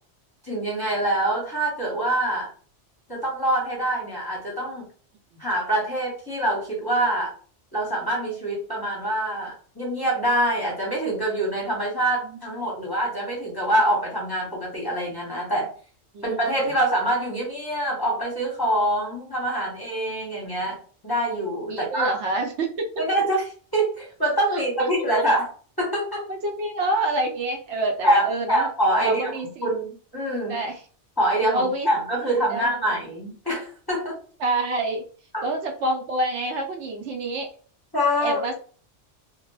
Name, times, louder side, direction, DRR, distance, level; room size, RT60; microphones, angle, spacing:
voice 1, 0.5-2.5 3.1-4.8 5.4-7.3 7.7-15.7 16.2-20.8 21.0-22.2 23.0-23.4 23.7-25.5 25.8-26.3 28.0-29.3 29.6-30.5 31.2-34.2 35.3-35.5 37.9-38.4, right 1 dB, 20° left, -4 dB, 0.7 m, -25 dB
voice 2, 21.7-22.9 24.5-24.9 25.2-25.3 26.3-28.7 28.9-29.7 30.5-30.8 31.5-31.9 32.5-32.8 34.4-35.0 35.4-37.5 38.2-38.6, right 2 dB, 75° right, 3 dB, 0.9 m, -27 dB
2.3 x 2.1 x 3.0 m, 0.41 s
omnidirectional pair, 1.2 m